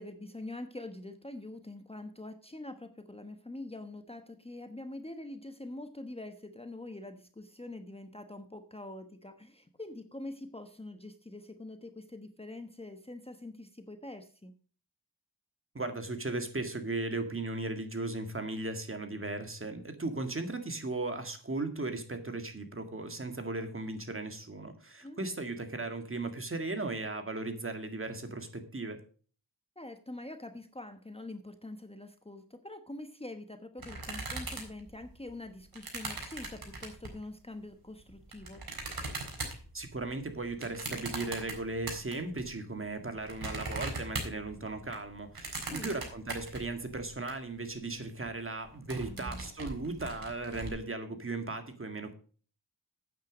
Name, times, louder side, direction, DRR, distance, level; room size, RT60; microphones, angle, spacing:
voice 1, 0.0-14.5 25.0-25.2 29.8-38.6 45.7-46.0 49.1-49.5, left 2 dB, 15° left, 7 dB, 1.1 m, -45 dB
voice 2, 15.7-29.0 39.7-52.1, right 2 dB, 30° right, 7 dB, 2.0 m, -37 dB
sound 1, 33.8-37.2 37.9-42.4 42.8-47.3 47.7-47.8 48.0-48.3 48.6-50.7, right 3 dB, 60° right, 4.0 m, -40 dB
9.3 x 9.0 x 5.0 m, 0.40 s
wide cardioid pair, 80°, 40 cm